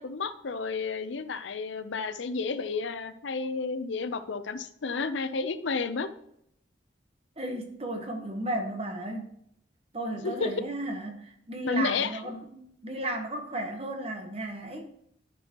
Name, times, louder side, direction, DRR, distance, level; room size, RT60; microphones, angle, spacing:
voice 1, 0.0-6.1 10.2-10.5 11.6-12.2, left 4 dB, 80° left, 0.6 m, -31 dB
voice 2, 7.4-9.3 9.9-14.9, right 1 dB, 30° right, 1.2 m, -34 dB
11.0 x 6.1 x 3.0 m
head